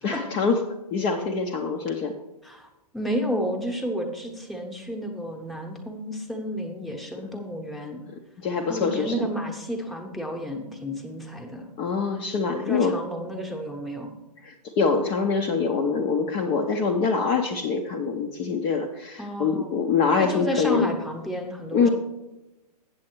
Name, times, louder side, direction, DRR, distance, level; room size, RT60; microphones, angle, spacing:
voice 1, 0.0-0.6 0.9-2.1 8.4-9.3 11.8-13.0 14.4-20.9 21.7-21.9, left 5 dB, 25° left, 2 dB, 0.6 m, -24 dB
voice 2, 2.9-8.0 8.7-11.7 12.5-14.1 19.2-19.8 20.1-21.9, equal, ahead, 0 dB, 0.9 m, -31 dB
7.6 x 7.5 x 4.5 m, 0.99 s
hypercardioid pair, 135°, 21 cm